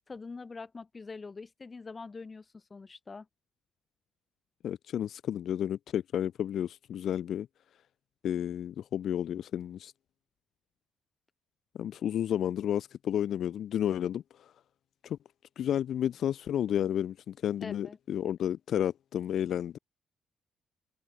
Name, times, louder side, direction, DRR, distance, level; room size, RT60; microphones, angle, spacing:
voice 1, 0.1-3.3 17.6-18.0, left 4 dB, 30° left, 1.6 m, -44 dB
voice 2, 4.6-7.5 8.2-9.9 11.7-14.5 15.0-15.2 15.6-19.8, left 10 dB, 65° left, 0.6 m, -31 dB
cardioid pair, 90°, 0 cm